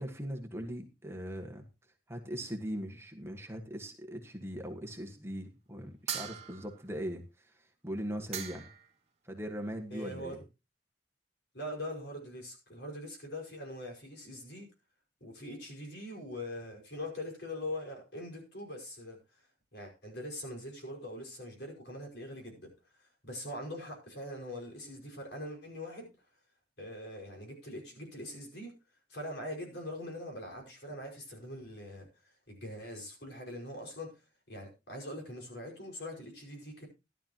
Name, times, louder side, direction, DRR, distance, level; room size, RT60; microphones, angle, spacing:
voice 1, 0.0-1.6 2.1-7.5 7.8-8.7 9.2-10.4, equal, 15° right, 4 dB, 1.6 m, -40 dB
sound 1, 6.1-6.9 8.0-8.1 8.3-8.9, right 8 dB, 35° right, 2.2 m, -40 dB
voice 2, 9.9-10.4 11.5-14.7 15.2-19.4 19.7-26.1 26.8-28.7 29.1-34.1 34.5-36.9, left 1 dB, 70° left, 1 dB, 5.4 m, -42 dB
14.5 x 11.5 x 3.0 m, 0.27 s
head